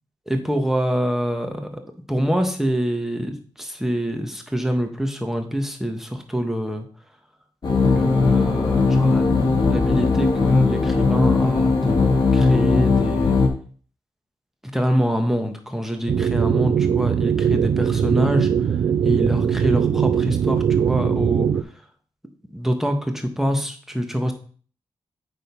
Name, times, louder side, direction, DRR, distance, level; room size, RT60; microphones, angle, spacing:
voice 1, 0.3-1.8 2.1-6.8 7.9-13.4 14.7-18.8 19.0-21.8 22.5-24.3, equal, 5° right, 5 dB, 1.6 m, -25 dB
sound 1, 7.6-13.5, left 4 dB, 45° left, 1.8 m, -18 dB
sound 2, 16.1-21.6, right 8 dB, 65° right, 0.5 m, -20 dB
9.2 x 4.0 x 5.4 m, 0.43 s
cardioid pair, 80°, 10 cm